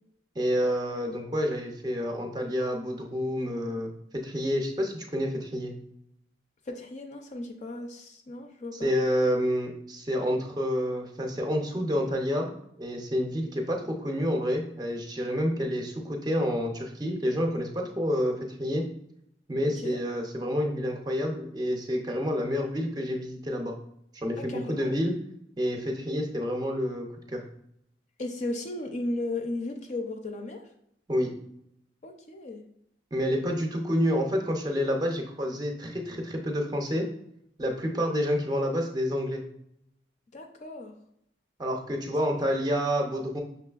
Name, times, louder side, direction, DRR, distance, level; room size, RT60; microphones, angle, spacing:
voice 1, 0.4-3.9 4.2-5.7 8.7-12.5 12.8-18.8 19.5-23.8 24.1-25.2 25.6-27.4 31.1-31.3 33.1-37.1 37.6-39.4 41.6-43.4, equal, 25° right, 2 dB, 0.5 m, -28 dB
voice 2, 6.7-8.9 19.6-20.0 24.4-25.0 28.2-30.6 32.0-32.6 40.3-40.9 42.4-42.5, left 2 dB, 40° left, 4 dB, 0.4 m, -35 dB
5.7 x 3.1 x 2.3 m, 0.74 s
head